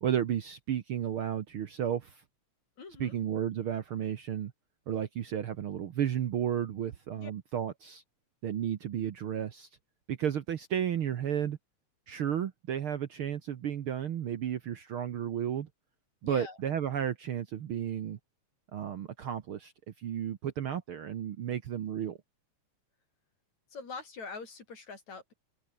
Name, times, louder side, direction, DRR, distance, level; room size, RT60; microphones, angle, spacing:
voice 1, 0.0-2.2 3.0-4.5 4.9-8.0 8.4-9.7 10.1-11.6 12.1-15.7 16.2-18.2 18.7-19.7 20.0-22.2, right 9 dB, 60° right, 1.6 m, -33 dB
voice 2, 2.8-3.2 7.2-7.3 16.2-16.6 23.7-25.3, left 4 dB, 65° left, 6.4 m, -43 dB
open air
omnidirectional pair, 3.4 m